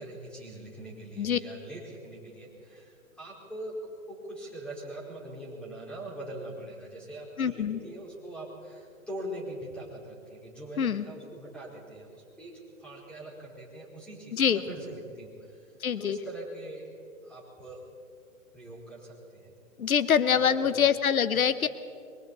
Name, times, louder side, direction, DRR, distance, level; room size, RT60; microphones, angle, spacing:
voice 1, 0.0-3.8 4.1-16.9 17.2-17.8 18.5-19.5 20.3-20.9 21.3-21.4, right 1 dB, ahead, -4 dB, 4.5 m, -42 dB
voice 2, 7.4-7.8 10.8-11.0 14.3-14.6 15.8-16.2 19.8-21.7, left 8 dB, 85° left, 13 dB, 1.1 m, -25 dB
27.0 x 23.5 x 4.2 m, 2.4 s
hypercardioid pair, 150°, 41 cm